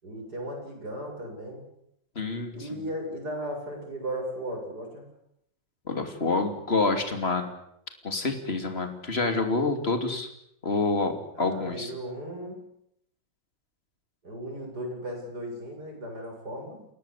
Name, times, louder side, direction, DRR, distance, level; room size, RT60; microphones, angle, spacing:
voice 1, 0.0-1.6 2.5-5.1 11.3-12.6 14.2-16.9, right 1 dB, 50° right, 2 dB, 8.3 m, -36 dB
voice 2, 2.1-2.5 5.9-7.5 8.0-10.3 10.6-11.9, left 3 dB, 30° left, 6 dB, 3.1 m, -27 dB
29.5 x 17.5 x 8.5 m, 0.76 s
omnidirectional pair, 2.1 m